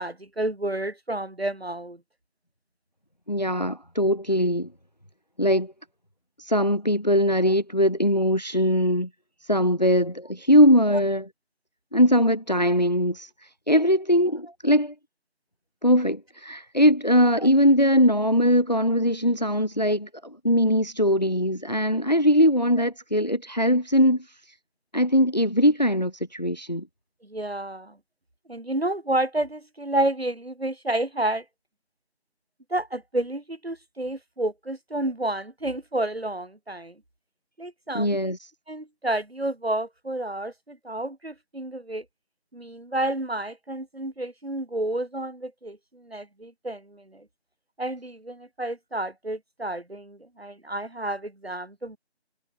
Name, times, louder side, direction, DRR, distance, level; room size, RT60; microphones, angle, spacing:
voice 1, 0.0-2.0 10.9-11.0 17.4-17.5 27.2-28.0 28.5-31.4 32.7-36.9 37.6-38.3 38.7-42.0 42.5-47.2 47.8-52.0, right 1 dB, 65° right, 3.4 m, -30 dB
voice 2, 3.3-4.7 5.4-5.7 6.4-9.1 9.5-11.2 11.9-13.3 13.7-14.9 15.8-24.2 24.9-26.8 37.9-38.4, equal, 40° left, 1.0 m, -21 dB
figure-of-eight pair, 175°, 33 cm